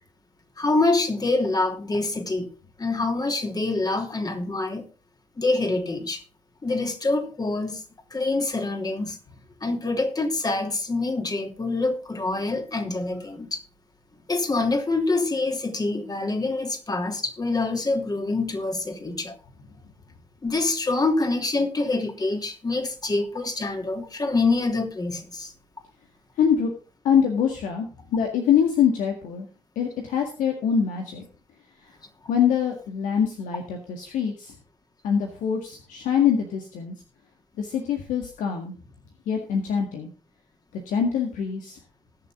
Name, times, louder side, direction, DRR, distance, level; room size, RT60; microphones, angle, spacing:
voice 1, 0.6-2.5 2.8-4.8 5.4-6.2 6.6-7.8 8.1-9.2 9.6-13.6 14.3-19.3 20.4-25.5, left 3 dB, 25° left, 3.0 m, -25 dB
voice 2, 26.4-26.7 27.0-29.5 29.8-31.3 32.3-34.5 35.0-36.9 37.6-38.7 39.3-40.1 40.7-41.8, left 7 dB, 60° left, 1.8 m, -24 dB
20.0 x 6.8 x 3.7 m
figure-of-eight pair, 45°, 15 cm